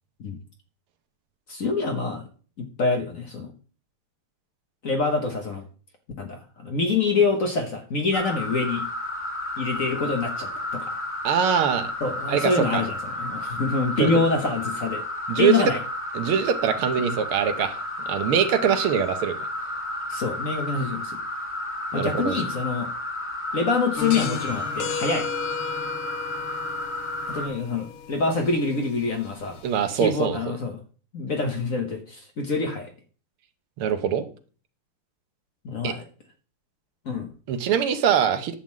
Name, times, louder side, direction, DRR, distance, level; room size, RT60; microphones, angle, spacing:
voice 1, 1.5-2.2 2.6-3.5 4.8-5.6 6.2-8.8 9.6-10.9 12.0-15.0 15.4-15.8 17.0-17.1 20.1-21.2 21.9-22.9 23.5-25.3 27.3-29.6 29.9-30.8 31.1-32.9 35.6-36.0 37.0-37.3, left 4 dB, 50° left, 4 dB, 1.2 m, -26 dB
sound 1, 8.1-27.5, left 1 dB, 5° left, 1.3 m, -32 dB
voice 2, 11.2-11.9 12.3-12.8 14.0-14.1 15.3-15.7 16.1-17.8 18.1-19.4 21.9-22.5 29.6-30.4 33.8-34.2 35.8-35.9 37.5-38.6, right 8 dB, 80° right, 9 dB, 1.8 m, -23 dB
sound 2, 24.0-30.2, left 6 dB, 80° left, 1.8 m, -35 dB
10.5 x 3.7 x 7.3 m, 0.39 s
omnidirectional pair, 2.4 m